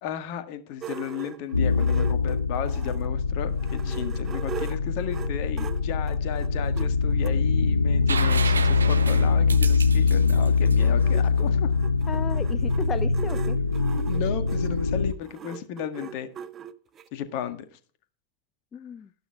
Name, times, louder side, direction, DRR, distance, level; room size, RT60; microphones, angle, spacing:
voice 1, 0.0-11.7 14.0-16.3 17.1-17.7, left 9 dB, 45° left, 10 dB, 1.8 m, -34 dB
sound 1, 0.8-3.1 3.5-7.4 8.1-8.2 8.5-8.6 8.8-17.1, right 9 dB, 25° right, 0.9 m, -41 dB
sound 2, 1.5-15.1, left 4 dB, 80° left, 0.6 m, -23 dB
sound 3, 8.1-11.8 13.7-13.8, right 5 dB, 75° right, 0.9 m, -32 dB
voice 2, 12.1-13.6 18.7-19.1, left 7 dB, 20° left, 13 dB, 0.6 m, -34 dB
13.0 x 12.0 x 3.6 m, 0.40 s
figure-of-eight pair, 90°, 0 cm